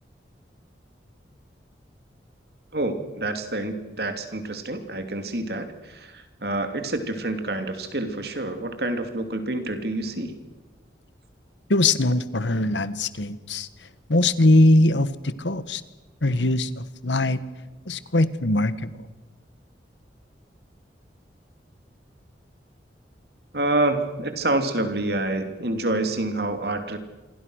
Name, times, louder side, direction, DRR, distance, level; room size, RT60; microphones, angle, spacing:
voice 1, 2.7-10.4 23.5-27.0, right 2 dB, 60° right, 7 dB, 2.8 m, -27 dB
voice 2, 11.7-13.7 14.1-15.8 16.2-16.7 17.0-17.4 17.9-18.9, left 2 dB, 90° left, 14 dB, 1.5 m, -21 dB
27.5 x 23.0 x 6.5 m, 1.2 s
head